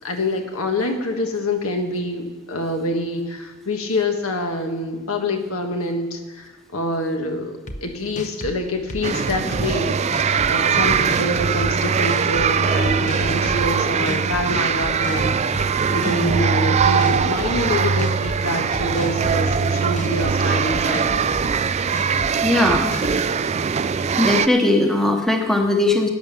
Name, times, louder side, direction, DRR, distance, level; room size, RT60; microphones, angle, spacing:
voice 1, 0.0-21.3, left 2 dB, 75° left, 4 dB, 1.5 m, -26 dB
sound 1, 7.7-7.8 8.2-8.5 8.9-9.7 10.1-10.5 10.9-11.7 12.1-12.5 12.8-13.7 14.1-14.4 14.8-15.6 16.0-16.4 16.8-17.6 18.0-18.4 18.7-19.6 20.0-20.3 20.7-21.5 21.9-22.3 22.7-23.2, left 1 dB, 35° left, 0.9 m, -32 dB
sound 2, 9.0-24.5, right 6 dB, 30° right, 0.3 m, -21 dB
voice 2, 22.4-22.9 24.2-26.1, left 2 dB, ahead, 2 dB, 1.0 m, -19 dB
11.5 x 9.5 x 7.0 m, 1.2 s
head